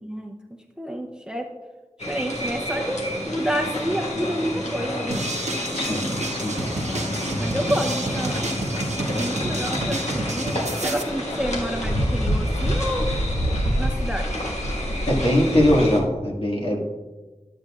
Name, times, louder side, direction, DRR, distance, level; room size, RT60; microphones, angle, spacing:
voice 1, 0.0-1.5 2.1-5.3 7.4-8.5 9.2-13.1 13.8-14.4, equal, 5° right, 2 dB, 0.7 m, -29 dB
sound 1, 2.0-16.0, equal, 65° left, 1.6 m, -28 dB
sound 2, 5.1-11.0, right 2 dB, 65° right, 0.9 m, -29 dB
voice 2, 5.7-6.6 15.1-16.8, left 1 dB, 45° left, -2 dB, 1.8 m, -21 dB
12.0 x 7.8 x 2.4 m, 1.2 s
wide cardioid pair, 50°, 13 cm